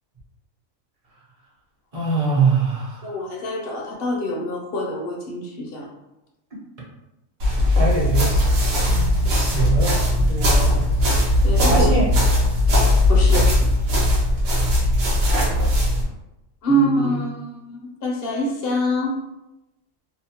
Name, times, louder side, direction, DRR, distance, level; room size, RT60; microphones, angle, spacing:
voice 1, 1.9-3.1 7.8-8.5 9.3-10.8 11.7-12.1 16.7-17.2, right 4 dB, 35° right, -5 dB, 0.6 m, -23 dB
voice 2, 3.0-5.9 11.4-11.9 13.1-13.7 16.6-19.2, equal, 65° left, -1 dB, 0.6 m, -25 dB
sound 1, 7.4-16.0, left 1 dB, 70° right, 1.0 m, -18 dB
2.7 x 2.1 x 2.8 m, 0.94 s
omnidirectional pair, 1.3 m